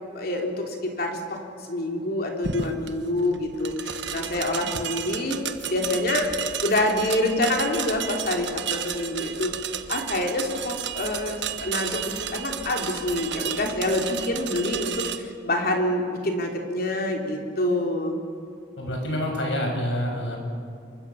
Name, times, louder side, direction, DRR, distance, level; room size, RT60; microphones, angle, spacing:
voice 1, 0.1-1.4 1.7-5.4 5.7-6.3 6.6-9.5 9.9-18.2, left 1 dB, 55° left, 2 dB, 3.4 m, -26 dB
sound 1, 2.4-15.2, right 8 dB, 70° right, 1.4 m, -32 dB
voice 2, 18.8-20.4, equal, 80° left, 2 dB, 6.4 m, -27 dB
27.0 x 24.5 x 7.1 m, 2.4 s
head